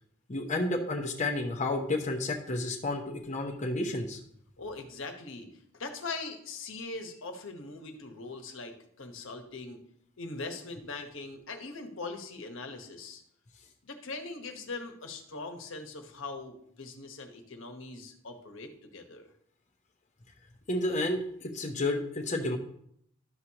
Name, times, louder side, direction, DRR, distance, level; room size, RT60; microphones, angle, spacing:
voice 1, 0.3-4.2 20.7-22.6, left 2 dB, 35° left, 1 dB, 0.8 m, -31 dB
voice 2, 4.6-5.5 5.7-9.8 10.2-13.2 13.8-19.3, left 3 dB, 75° left, 4 dB, 1.2 m, -41 dB
12.0 x 6.3 x 2.9 m, 0.69 s
head